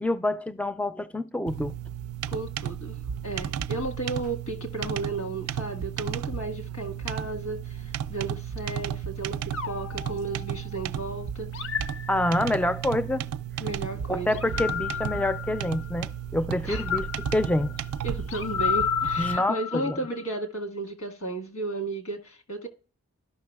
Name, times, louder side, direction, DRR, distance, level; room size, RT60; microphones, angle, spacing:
voice 1, 0.0-1.7 12.1-13.3 14.1-17.7 19.2-20.0, left 1 dB, 5° left, 0.3 m, -27 dB
sound 1, 1.5-19.4, right 9 dB, 90° right, 0.3 m, -34 dB
voice 2, 2.3-3.0 3.2-11.8 13.6-14.3 16.6-16.8 18.0-22.7, right 2 dB, 85° left, 1.5 m, -34 dB
sound 2, 9.5-10.9 11.5-12.8 14.3-16.0 16.7-20.2, left 7 dB, 60° left, 0.5 m, -32 dB
13.0 x 5.8 x 2.3 m
head